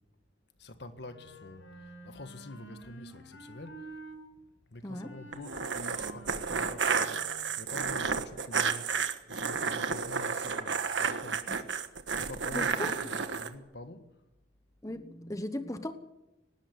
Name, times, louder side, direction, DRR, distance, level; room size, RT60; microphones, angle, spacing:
voice 1, 0.6-3.9 4.7-14.1, left 2 dB, 65° left, 1.6 m, -47 dB
Wind instrument woodwind instrument, 1.0-4.2 4.9-7.6, right 1 dB, 85° left, 6.4 m, -49 dB
sound 1, 5.3-13.5, right 5 dB, 80° right, 1.4 m, -31 dB
voice 2, 12.5-12.9 14.8-15.9, left 1 dB, 15° left, 1.1 m, -37 dB
19.0 x 17.5 x 8.0 m
head